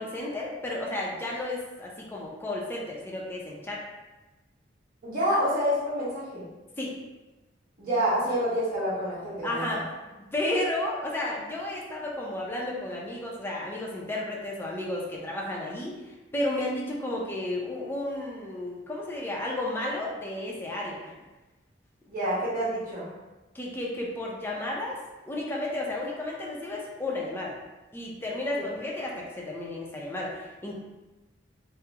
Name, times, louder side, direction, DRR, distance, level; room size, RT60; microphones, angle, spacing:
voice 1, 0.0-3.8 6.8-7.0 9.4-9.8 10.3-16.0 16.3-21.1 23.5-25.0 25.2-27.5 27.9-30.7, left 1 dB, 10° left, -3 dB, 0.5 m, -32 dB
voice 2, 5.0-6.4 7.8-9.8 22.1-23.1, equal, 50° right, -9 dB, 1.2 m, -27 dB
2.8 x 2.0 x 3.5 m, 1.1 s
head